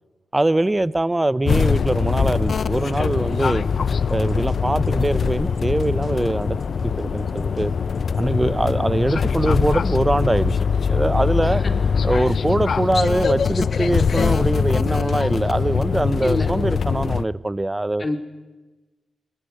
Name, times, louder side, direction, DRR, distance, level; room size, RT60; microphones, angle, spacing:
voice 1, 0.3-3.6 4.1-6.6 6.8-7.7 8.2-11.6 12.0-18.0, right 2 dB, 20° right, 17 dB, 0.9 m, -22 dB
sound 1, 1.4-17.2, left 6 dB, 65° left, 0.7 m, -22 dB
sound 2, 2.2-8.2, right 2 dB, 50° right, 6.0 m, -44 dB
voice 2, 11.4-11.7 12.2-12.3 16.2-16.5 18.0-18.2, left 2 dB, 40° left, 4 dB, 3.6 m, -27 dB
21.0 x 20.0 x 10.0 m, 1.2 s
supercardioid pair, 45°, 0 cm